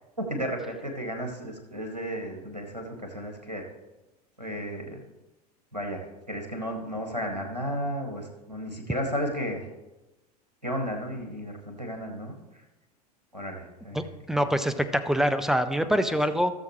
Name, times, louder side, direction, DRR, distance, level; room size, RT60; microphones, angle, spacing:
voice 1, 0.2-3.6 4.4-5.0 5.7-9.7 10.6-12.6 13.3-14.5 15.8-16.2, equal, 90° right, 3 dB, 1.9 m, -34 dB
voice 2, 13.9-16.5, equal, ahead, 10 dB, 0.6 m, -25 dB
16.5 x 7.2 x 3.1 m, 1.0 s
figure-of-eight pair, 85°, 21 cm